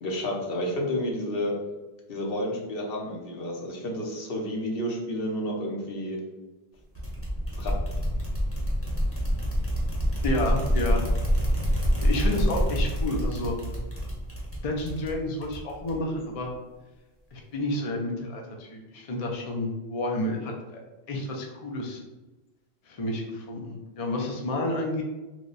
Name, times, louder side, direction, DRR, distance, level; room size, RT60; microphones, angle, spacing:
voice 1, 0.0-1.5 2.1-6.2 7.6-7.7, equal, 65° left, -1 dB, 0.9 m, -30 dB
sound 1, 7.0-16.2, equal, 15° left, 0.8 m, -27 dB
voice 2, 10.2-11.0 12.0-13.6 14.6-16.5 17.3-20.5 21.1-22.0 22.9-25.0, left 1 dB, 45° left, 1 dB, 0.5 m, -30 dB
3.1 x 2.1 x 3.8 m, 1.1 s
omnidirectional pair, 1.1 m